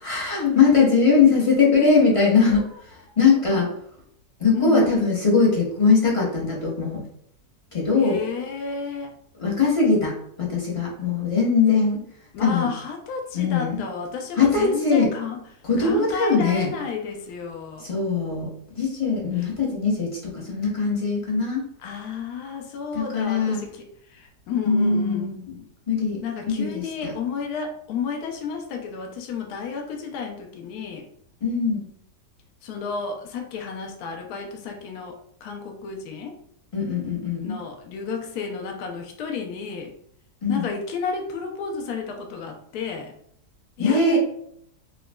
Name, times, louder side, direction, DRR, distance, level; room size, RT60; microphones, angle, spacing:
voice 1, 0.0-2.7 3.2-3.7 4.4-7.0 7.7-8.2 9.4-12.0 12.4-12.7 13.3-13.8 14.4-15.1 15.6-16.7 17.8-18.5 18.7-21.7 22.9-23.6 24.7-25.4 25.9-27.1 31.4-31.9 36.7-37.6 40.4-40.7 43.8-44.2, left 4 dB, 35° left, -4 dB, 0.5 m, -21 dB
voice 2, 4.5-5.0 8.0-9.2 12.3-15.4 15.8-17.9 19.4-19.5 21.8-25.3 26.2-31.1 32.6-36.4 37.4-39.9 40.5-43.2 43.8-44.2, left 5 dB, 70° left, 3 dB, 1.0 m, -32 dB
5.0 x 2.2 x 2.2 m, 0.68 s
omnidirectional pair, 1.8 m